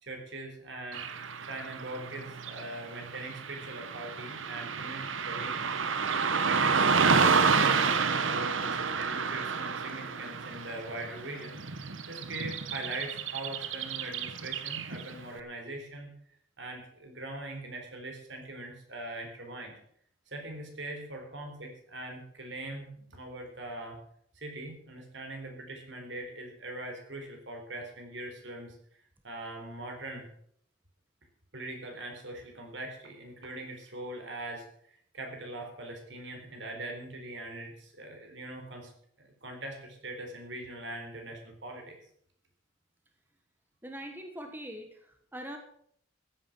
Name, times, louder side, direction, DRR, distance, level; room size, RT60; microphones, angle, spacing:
voice 1, 0.0-5.7 6.3-11.6 12.1-16.1 16.6-19.8 20.3-24.0 24.3-28.7 29.2-30.3 31.5-38.9 39.2-42.0, right 2 dB, 65° right, 3 dB, 4.1 m, -41 dB
Car passing by / Traffic noise roadway noise, 0.9-15.2, right 5 dB, 85° right, 1.1 m, -30 dB
voice 2, 43.8-45.6, equal, 10° right, 4 dB, 1.3 m, -42 dB
14.5 x 9.2 x 6.1 m, 0.66 s
head